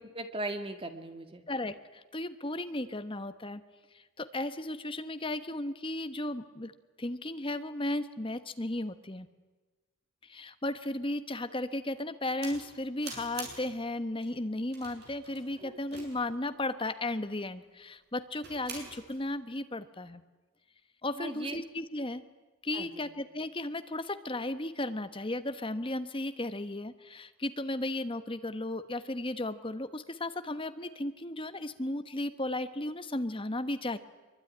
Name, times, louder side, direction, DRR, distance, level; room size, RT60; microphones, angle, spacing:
voice 1, 0.0-1.4 15.6-15.8 21.2-21.6 22.7-23.1, right 2 dB, 25° right, 6 dB, 2.3 m, -39 dB
voice 2, 1.5-3.6 4.2-6.7 7.0-9.3 10.2-20.2 21.0-22.2 22.6-34.0, left 1 dB, 25° left, 10 dB, 1.1 m, -35 dB
sound 1, 12.4-12.7 13.0-13.8 14.2-14.3 14.7-16.3 18.4-19.2, right 4 dB, 45° right, 7.2 m, -45 dB
24.0 x 23.5 x 9.8 m, 1.3 s
head